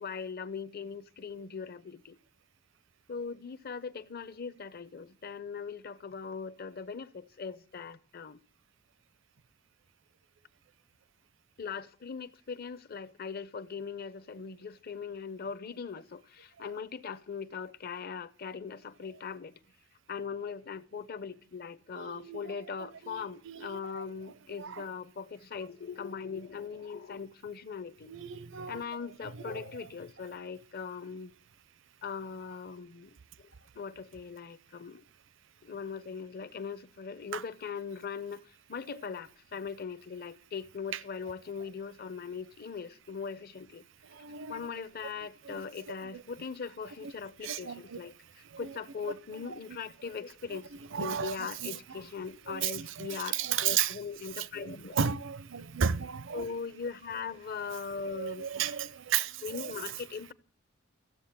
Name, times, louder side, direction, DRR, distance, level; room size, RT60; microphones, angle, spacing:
voice 1, 0.0-2.2 3.1-8.4 11.6-19.6 20.1-28.1 28.7-31.3 32.0-33.2 33.7-35.0 35.6-43.8 44.5-50.7 51.0-55.0 56.3-58.6 59.4-60.3, left 6 dB, 50° left, 0.7 m, -40 dB
voice 2, 21.9-22.4 22.8-24.0 24.6-24.9 28.1-28.8 29.5-29.6 37.3-37.4 44.1-44.6 45.5-45.6 46.1-46.2 47.4-48.0 48.5-48.7 50.9-51.7 52.5-53.9 54.4-56.5 58.0-59.7, right 8 dB, 70° right, 0.6 m, -34 dB
15.0 x 7.4 x 8.6 m
head